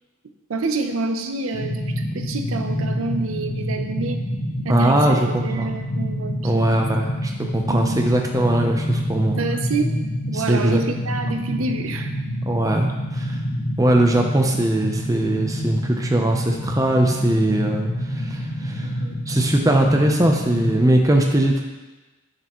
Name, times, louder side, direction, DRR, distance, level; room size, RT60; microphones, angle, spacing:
voice 1, 0.5-4.2 4.6-6.8 7.7-8.1 9.4-9.9 10.3-12.1 18.8-19.2, right 3 dB, 85° right, 6 dB, 0.7 m, -28 dB
sound 1, 1.5-20.8, equal, 70° left, 1.4 m, -27 dB
voice 2, 4.7-5.7 6.4-9.4 10.3-10.8 12.5-12.9 13.1-13.4 13.8-18.9 19.3-21.6, right 1 dB, 15° right, 2 dB, 0.6 m, -20 dB
9.0 x 6.7 x 3.0 m, 1.2 s
head